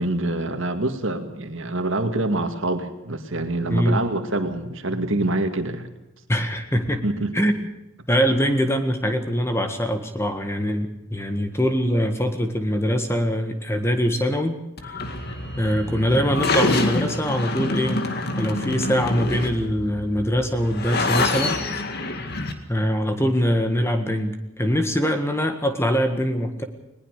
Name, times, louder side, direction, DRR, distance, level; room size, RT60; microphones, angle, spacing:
voice 1, 0.0-5.9 7.0-7.3, right 2 dB, 60° right, 6 dB, 2.2 m, -25 dB
voice 2, 3.7-4.0 6.3-7.0 7.3-7.5 8.1-14.5 14.8-15.0 15.6-18.1 18.4-21.6 22.7-26.6, equal, 10° left, 6 dB, 1.7 m, -23 dB
sound 1, 14.8-22.5, left 2 dB, 45° left, 2.2 m, -26 dB
20.5 x 19.5 x 6.6 m, 0.91 s
head